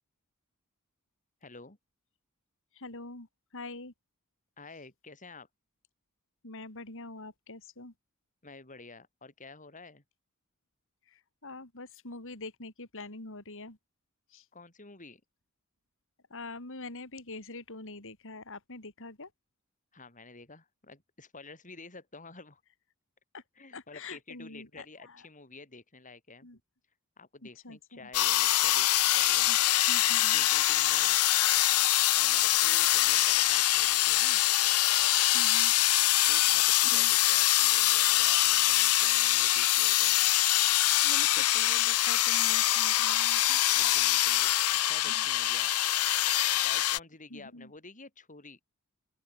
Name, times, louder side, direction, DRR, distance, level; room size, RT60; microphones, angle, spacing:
voice 1, 1.4-1.8 4.6-5.5 8.4-10.0 14.5-15.2 19.9-22.6 23.6-26.5 27.2-29.6 30.3-31.2 32.1-34.4 36.2-40.2 41.2-41.5 43.7-45.7 46.6-48.6, left 3 dB, 35° left, 5.5 m, -50 dB
voice 2, 2.7-3.3 3.5-3.9 6.4-7.9 11.1-13.8 14.3-14.4 16.3-19.3 23.3-23.4 23.7-25.2 26.4-26.6 27.6-27.8 29.5-29.6 29.9-30.5 35.2-35.7 36.8-37.1 41.0-44.0 45.1-45.2 47.3-47.7, left 3 dB, 60° left, 4.7 m, -44 dB
sound 1, 28.1-47.0, left 14 dB, 80° left, 1.3 m, -24 dB
open air
head